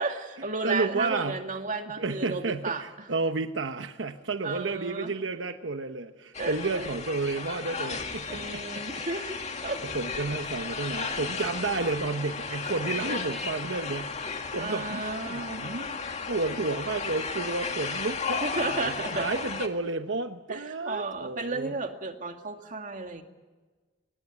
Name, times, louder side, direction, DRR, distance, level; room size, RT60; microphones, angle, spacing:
voice 1, 0.0-3.1 4.4-5.1 6.4-6.9 8.3-9.8 14.6-15.6 18.4-19.5 20.5-23.2, right 3 dB, 45° right, 4 dB, 2.3 m, -33 dB
voice 2, 0.6-1.4 2.0-9.0 9.8-21.7, right 3 dB, 80° right, 7 dB, 1.0 m, -32 dB
sound 1, 6.3-19.7, left 5 dB, 40° left, 2.1 m, -34 dB
24.5 x 20.0 x 7.4 m, 1.3 s
head